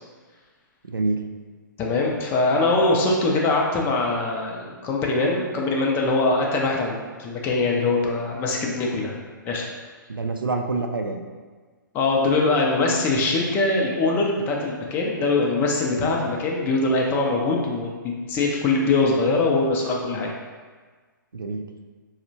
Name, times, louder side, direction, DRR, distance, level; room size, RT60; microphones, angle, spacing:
voice 1, 0.8-1.2 10.1-11.2 21.3-21.8, right 3 dB, 85° right, 5 dB, 0.4 m, -27 dB
voice 2, 1.8-9.1 9.5-9.7 11.9-20.3, left 3 dB, 20° left, -1 dB, 0.4 m, -22 dB
4.2 x 2.1 x 2.6 m, 1.5 s
figure-of-eight pair, 120°, 11 cm